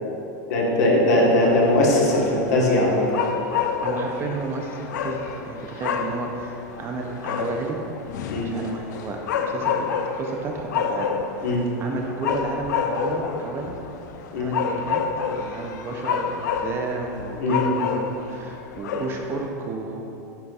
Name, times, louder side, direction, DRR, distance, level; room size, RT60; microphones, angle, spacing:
voice 1, 0.5-3.1 8.3-8.5 11.4-11.6 14.3-14.5 17.4-17.6, left 1 dB, 65° left, -2 dB, 1.3 m, -20 dB
sound 1, 1.4-19.5, left 6 dB, 85° left, 0.4 m, -29 dB
voice 2, 3.8-7.8 8.4-11.1 11.4-11.5 11.8-13.8 14.3-15.0 15.4-20.0, right 3 dB, 25° right, 1 dB, 0.5 m, -32 dB
10.0 x 3.9 x 2.4 m, 2.9 s
supercardioid pair, 145°, 9 cm